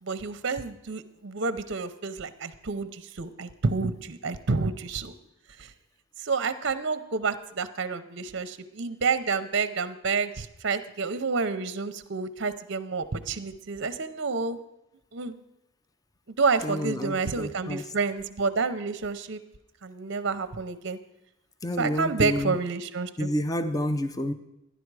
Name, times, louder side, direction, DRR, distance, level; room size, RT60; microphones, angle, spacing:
voice 1, 0.0-5.1 5.6-5.7 6.2-14.6 15.1-15.4 16.4-19.4 19.8-21.0 21.8-23.3, right 4 dB, 55° right, 12 dB, 0.6 m, -29 dB
voice 2, 16.6-17.8 21.6-22.6 23.2-24.3, left 1 dB, 15° left, 10 dB, 0.5 m, -29 dB
12.5 x 10.0 x 4.7 m, 0.89 s
head